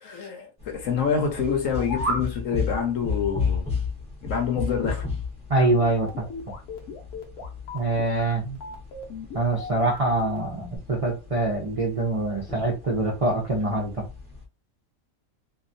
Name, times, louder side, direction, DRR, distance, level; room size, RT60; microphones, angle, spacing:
voice 1, 0.0-3.6 4.2-5.0, left 6 dB, 65° left, 1.1 m, -27 dB
sound 1, 0.6-14.4, left 5 dB, 5° left, 0.6 m, -34 dB
sound 2, 1.6-2.3, right 2 dB, 25° right, 0.8 m, -29 dB
voice 2, 5.5-6.3 7.7-8.4 9.3-14.0, right 2 dB, 60° right, 0.3 m, -24 dB
sound 3, 5.6-10.8, left 3 dB, 85° left, 1.2 m, -38 dB
2.8 x 2.3 x 2.5 m
omnidirectional pair, 1.5 m